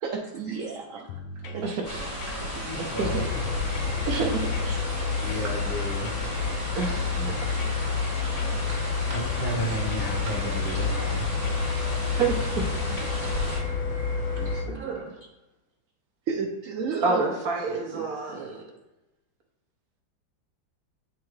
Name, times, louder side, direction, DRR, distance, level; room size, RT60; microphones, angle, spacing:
voice 1, 0.0-1.7 2.2-2.9 4.2-4.3 4.6-4.8 5.4-5.6 7.0-7.5 8.2-8.3 8.7-8.8 9.1-9.2 10.3-10.4 10.7-10.9 13.0-13.1 14.4-15.1 16.3-17.4 17.9-18.1 18.3-18.5, right 5 dB, 90° right, 1 dB, 0.7 m, -35 dB
sound 1, 1.1-1.7 2.2-2.7 3.0-4.8 5.3-5.5 6.1-6.3 6.8-7.9 8.4-8.8 9.1-10.9 11.5-11.7 12.2-12.4 13.0-13.2, left 4 dB, 75° left, 1.3 m, -39 dB
voice 2, 1.6-2.0 3.0-3.1 4.0-4.5 5.2-5.4 6.7-7.3 12.2-12.6 13.2-13.3 14.7-15.1 17.0-18.6, right 4 dB, 55° right, 0 dB, 1.2 m, -28 dB
sound 2, 1.8-13.6, equal, 55° left, 2.9 m, -35 dB
voice 3, 2.6-3.4 5.1-6.1 9.1-11.3, equal, 35° left, -4 dB, 1.1 m, -33 dB
sound 3, 3.0-14.6, left 5 dB, 90° left, 1.9 m, -29 dB
9.5 x 3.5 x 3.2 m, 0.97 s
omnidirectional pair, 2.1 m